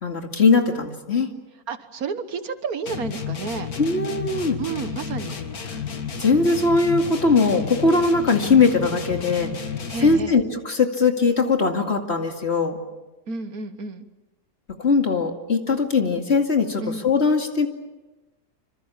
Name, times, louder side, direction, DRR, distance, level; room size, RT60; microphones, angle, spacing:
voice 1, 0.0-1.3 3.8-4.6 6.2-9.5 10.0-12.8 14.8-17.7, left 4 dB, 40° left, 4 dB, 2.5 m, -20 dB
voice 2, 1.7-3.7 4.6-5.4 9.9-10.4 13.3-14.1 16.8-17.1, right 4 dB, 70° right, 10 dB, 1.7 m, -31 dB
sound 1, 2.9-10.4, left 6 dB, 70° left, 2.3 m, -32 dB
26.5 x 26.5 x 7.3 m, 1.1 s
omnidirectional pair, 1.7 m